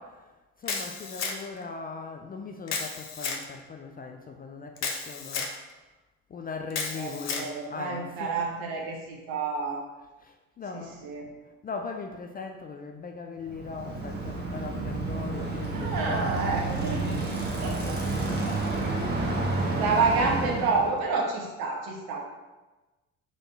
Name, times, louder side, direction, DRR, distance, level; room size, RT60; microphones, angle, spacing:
voice 1, 0.0-5.5 6.3-8.4 10.0-11.0 11.6-17.2 17.7-18.1 18.5-19.0 19.3-20.1, left 4 dB, 25° left, 3 dB, 0.4 m, -40 dB
Camera, 0.7-1.6 2.7-3.4 4.8-5.5 6.7-7.5, left 5 dB, 40° left, 0.8 m, -32 dB
voice 2, 6.9-9.9 10.7-11.3 15.7-17.3 17.6-18.0 19.8-22.2, right 4 dB, 60° right, 0 dB, 1.1 m, -29 dB
Bicycle, 13.5-21.0, right 3 dB, 25° right, 1.3 m, -30 dB
3.8 x 3.5 x 4.0 m, 1.1 s
hypercardioid pair, 55°, 41 cm